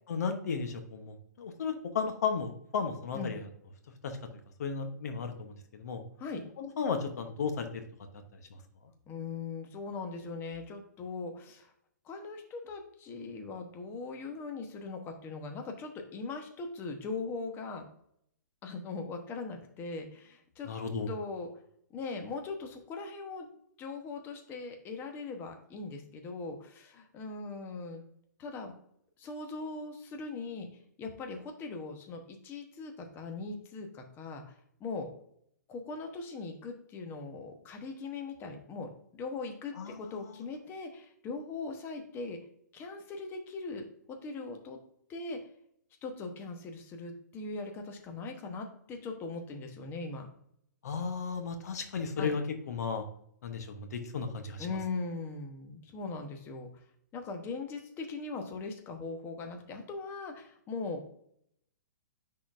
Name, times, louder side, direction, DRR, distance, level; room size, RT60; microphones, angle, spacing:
voice 1, 0.1-3.5 4.0-4.2 4.6-6.0 6.6-7.9 8.3-8.6 20.7-21.1 39.8-40.4 50.8-53.0 53.4-54.8, left 5 dB, 60° left, 6 dB, 0.9 m, -34 dB
voice 2, 9.1-11.7 12.0-17.9 18.6-20.7 21.1-21.5 21.9-23.5 23.8-28.0 28.4-28.7 29.2-30.7 31.0-34.5 34.8-35.1 35.7-42.4 42.7-44.8 45.1-45.4 46.0-50.3 52.2-52.3 54.6-56.8 57.1-61.0, left 3 dB, 20° left, 4 dB, 1.0 m, -40 dB
9.9 x 3.8 x 2.5 m, 0.69 s
figure-of-eight pair, 120°, 10 cm